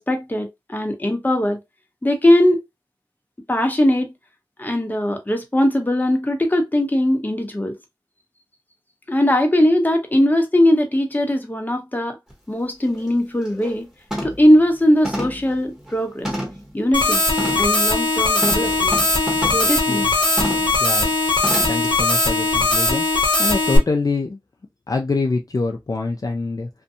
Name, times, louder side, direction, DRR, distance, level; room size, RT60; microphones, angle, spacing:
voice 1, 0.0-1.6 2.0-2.6 3.5-4.1 4.6-7.8 9.1-12.2 12.5-13.8 14.2-16.3 16.7-17.2 17.6-19.0 19.5-20.1, left 1 dB, 20° left, 0.7 m, -19 dB
sound 1, 12.3-12.4 12.8-13.1 13.5-13.8 14.1-14.5 15.0-16.7 17.4-17.7 18.4-19.7 20.4-20.7 21.4-21.9 22.2-22.3, equal, 5° right, 1.1 m, -29 dB
sound 2, 16.9-23.8, left 2 dB, 65° left, 1.0 m, -19 dB
voice 2, 20.8-21.1 21.7-23.1 23.4-24.4 24.9-26.7, left 3 dB, 45° left, 0.4 m, -25 dB
2.6 x 2.2 x 2.6 m
wide cardioid pair, 55°, 8 cm